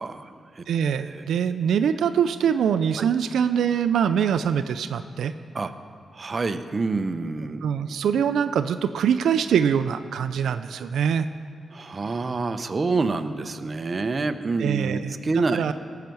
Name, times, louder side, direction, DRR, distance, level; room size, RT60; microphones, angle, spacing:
voice 1, 0.0-0.6 1.0-1.2 3.0-3.1 5.5-5.7 6.1-7.6 11.7-15.6, right 3 dB, 40° right, 9 dB, 0.6 m, -27 dB
voice 2, 0.7-5.3 7.6-11.3 14.6-15.2 15.5-15.7, right 8 dB, 90° right, 10 dB, 0.3 m, -23 dB
17.0 x 5.8 x 7.6 m, 2.5 s
cardioid pair, 95°, 0 cm